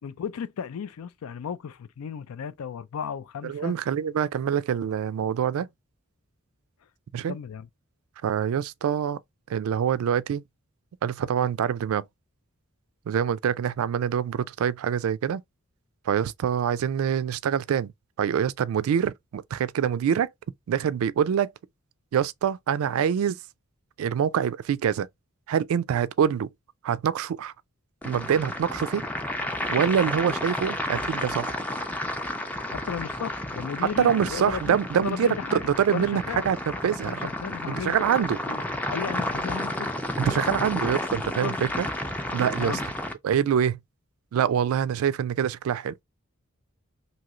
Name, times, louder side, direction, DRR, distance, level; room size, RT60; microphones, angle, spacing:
voice 1, 0.0-3.7 7.3-7.7 32.7-34.8 35.0-35.6 35.9-36.4 37.0-38.0 38.4-38.6 38.9-39.9 40.2-40.4 41.4-41.6 42.6-42.8, left 7 dB, 90° left, 0.4 m, -34 dB
voice 2, 3.4-5.7 7.1-7.3 8.2-9.2 9.5-10.4 11.0-12.0 13.1-15.4 16.1-17.9 18.2-20.3 20.7-21.5 22.1-23.4 24.0-25.1 25.5-26.5 26.8-27.5 28.0-29.1 29.7-31.5 33.8-37.2 37.7-38.4 40.2-41.9 42.3-42.8 43.2-43.8 44.3-46.0, right 8 dB, 75° right, 0.3 m, -25 dB
sound 1, 28.0-43.1, left 1 dB, 5° left, 0.4 m, -31 dB
3.0 x 2.7 x 2.3 m
head